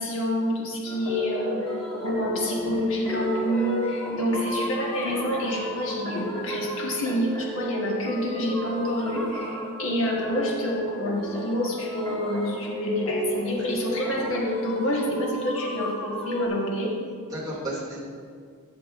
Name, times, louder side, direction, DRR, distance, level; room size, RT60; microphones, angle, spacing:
voice 1, 0.0-16.9, left 1 dB, 65° left, -2 dB, 1.3 m, -27 dB
sound 1, 0.8-14.4, right 1 dB, 20° left, 1.4 m, -34 dB
sound 2, 1.6-2.3 2.9-7.1 8.5-10.0 11.1-12.8 13.9-16.5, right 1 dB, ahead, 1.2 m, -39 dB
voice 2, 17.1-18.0, right 1 dB, 20° right, -7 dB, 2.3 m, -35 dB
13.0 x 8.0 x 2.5 m, 2.1 s
head